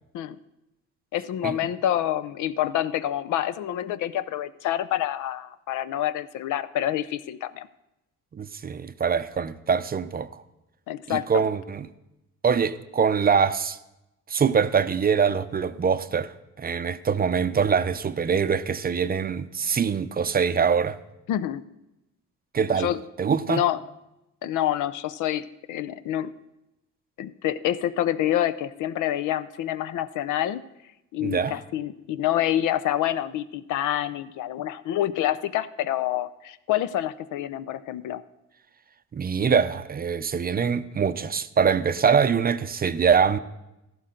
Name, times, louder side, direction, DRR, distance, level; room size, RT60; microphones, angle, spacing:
voice 1, 1.1-7.7 10.9-11.3 21.3-21.6 22.8-23.0 23.5-23.8 24.4-26.3 27.2-30.6 31.1-38.2, left 12 dB, 80° left, 0.6 m, -27 dB
voice 2, 8.3-10.3 11.1-11.9 12.4-13.8 14.3-16.3 16.6-21.0 22.5-22.9 23.2-23.6 31.2-31.6 39.1-43.4, right 6 dB, 30° right, 0.5 m, -23 dB
13.5 x 12.0 x 3.8 m
cardioid pair, 90°, 30 cm